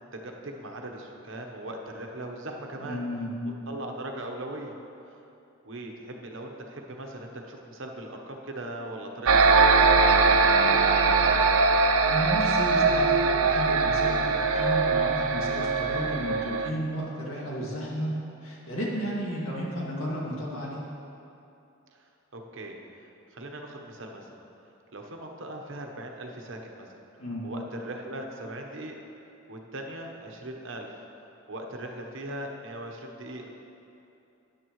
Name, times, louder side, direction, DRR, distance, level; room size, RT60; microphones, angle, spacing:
voice 1, 0.1-3.0 3.7-4.7 5.6-11.5 21.9-22.0 22.3-22.8 23.3-24.3 24.9-26.9 27.4-29.0 29.5-30.9 31.5-33.6, right 1 dB, 60° right, 2 dB, 1.0 m, -39 dB
voice 2, 2.8-3.3 12.0-18.1 18.4-20.8 27.2-27.5, equal, 75° left, -4 dB, 2.2 m, -33 dB
sound 1, 9.3-16.7, right 4 dB, 80° right, 0.5 m, -21 dB
13.5 x 9.6 x 3.1 m, 2.8 s
head